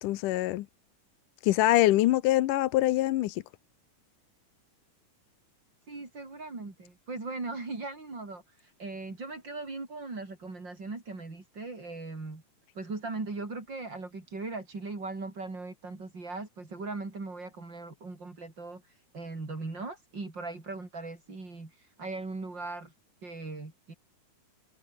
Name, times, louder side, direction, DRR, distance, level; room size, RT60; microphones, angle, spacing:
voice 1, 0.0-0.7 1.4-3.4, left 15 dB, 75° left, 2.3 m, -24 dB
voice 2, 5.9-12.4 12.8-22.9 23.2-23.9, right 3 dB, 30° right, 5.4 m, -39 dB
omnidirectional pair, 3.8 m